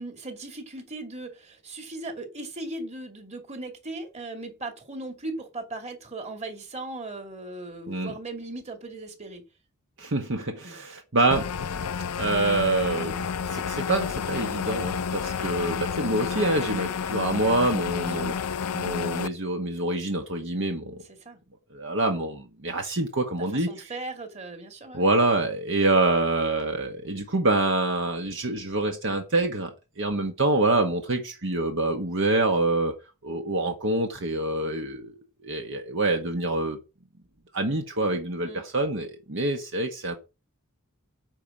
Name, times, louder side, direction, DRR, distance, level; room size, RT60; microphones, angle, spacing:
voice 1, 0.0-9.4 10.6-11.0 17.9-18.2 21.1-21.4 23.4-25.1 38.4-38.6, right 2 dB, 30° right, 2.4 m, -38 dB
voice 2, 10.0-11.5 12.2-18.3 18.7-21.0 21.7-23.7 24.9-32.9 33.2-35.1 35.4-36.8 37.5-40.1, right 2 dB, 60° right, 1.6 m, -26 dB
sound 1, 11.3-19.3, left 6 dB, 90° left, 0.6 m, -30 dB
9.8 x 4.9 x 7.2 m
head